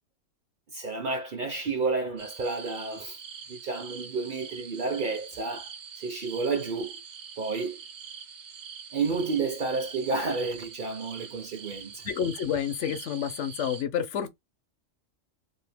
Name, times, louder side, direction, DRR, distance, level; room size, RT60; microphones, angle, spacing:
voice 1, 0.7-3.2 3.5-5.7 6.0-7.0 7.4-7.8 8.9-12.0, right 4 dB, 50° right, 0.7 m, -30 dB
sound 1, 2.2-13.8, right 7 dB, 80° right, 1.2 m, -44 dB
voice 2, 12.0-14.4, left 8 dB, 70° left, 0.9 m, -29 dB
2.8 x 2.7 x 3.3 m
omnidirectional pair, 1.3 m